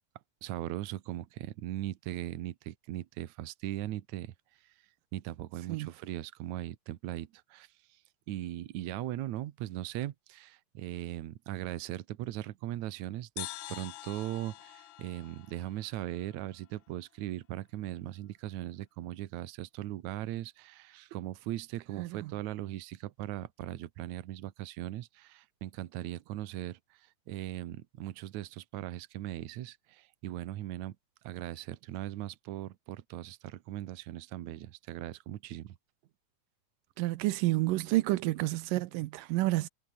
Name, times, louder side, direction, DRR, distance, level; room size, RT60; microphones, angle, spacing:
voice 1, 0.4-4.3 5.1-7.7 8.3-31.0 31.2-35.8, right 14 dB, 70° right, 2.2 m, -39 dB
sound 1, 13.4-16.9, left 15 dB, 70° left, 2.1 m, -46 dB
voice 2, 22.0-22.3 37.0-39.7, right 18 dB, 85° right, 2.4 m, -29 dB
omnidirectional pair, 3.8 m